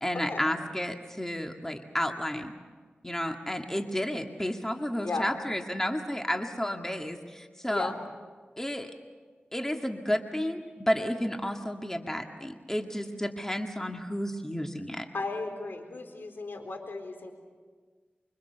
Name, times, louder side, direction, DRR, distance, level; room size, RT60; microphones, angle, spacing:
voice 1, 0.0-2.5 3.0-7.9 8.6-8.9 9.5-15.1, equal, 10° left, 4 dB, 2.0 m, -31 dB
voice 2, 5.0-5.3 7.7-8.0 15.1-17.3, left 3 dB, 70° left, 5 dB, 4.2 m, -35 dB
25.0 x 24.5 x 6.9 m, 1.5 s
cardioid pair, 40°, 4 cm